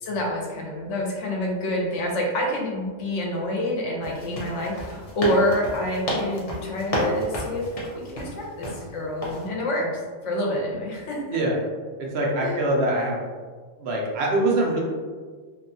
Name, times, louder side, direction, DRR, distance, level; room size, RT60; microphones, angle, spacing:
voice 1, 0.0-11.4 12.4-12.6, left 1 dB, 85° left, -2 dB, 1.0 m, -27 dB
sound 1, 4.0-8.8 9.2-9.5, equal, 40° left, 0.5 m, -31 dB
voice 2, 12.0-13.2 13.8-14.8, right 1 dB, 65° right, -2 dB, 0.8 m, -23 dB
2.8 x 2.2 x 2.6 m, 1.6 s
omnidirectional pair, 1.2 m